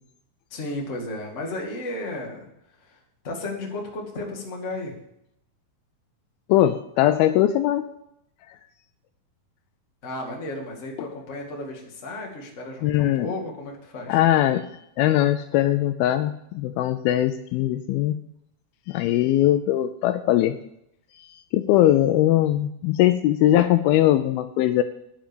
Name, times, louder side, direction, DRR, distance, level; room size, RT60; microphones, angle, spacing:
voice 1, 0.5-2.5 2.8-3.0 3.2-4.9 10.0-14.2, left 2 dB, 25° left, -1 dB, 1.7 m, -34 dB
voice 2, 6.5-7.9 11.0-11.1 12.8-13.3 14.1-14.7 15.0-18.2 18.9-20.6 21.2-24.8, left 13 dB, 80° left, 10 dB, 2.3 m, -21 dB
10.5 x 7.4 x 7.0 m, 0.77 s
omnidirectional pair, 4.5 m